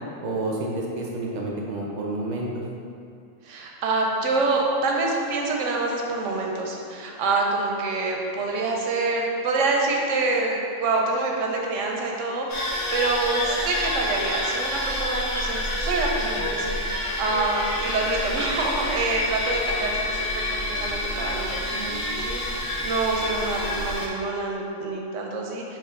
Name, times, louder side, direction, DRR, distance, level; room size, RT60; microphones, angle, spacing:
voice 1, 0.2-2.6, right 2 dB, 55° right, -3 dB, 0.5 m, -29 dB
voice 2, 3.4-25.8, right 3 dB, 90° right, 0 dB, 1.0 m, -26 dB
sound 1, 12.5-24.1, left 1 dB, 25° left, 0.5 m, -28 dB
3.5 x 3.2 x 4.5 m, 2.5 s
omnidirectional pair, 1.2 m